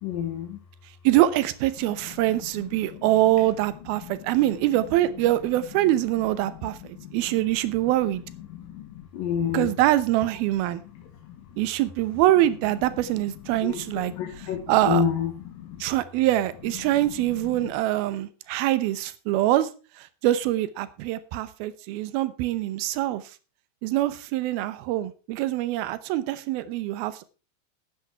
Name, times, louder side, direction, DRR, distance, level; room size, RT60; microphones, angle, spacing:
voice 1, 0.0-0.6 1.8-4.6 5.0-11.3 12.3-15.8 16.6-17.7, left 8 dB, 70° left, 3 dB, 3.0 m, -34 dB
voice 2, 1.0-6.8 7.1-8.2 9.5-10.8 11.6-14.1 14.7-15.0 15.8-19.7 20.0-23.2 23.8-27.2, right 14 dB, 80° right, 15 dB, 2.8 m, -24 dB
12.0 x 9.7 x 4.6 m, 0.33 s
omnidirectional pair, 4.4 m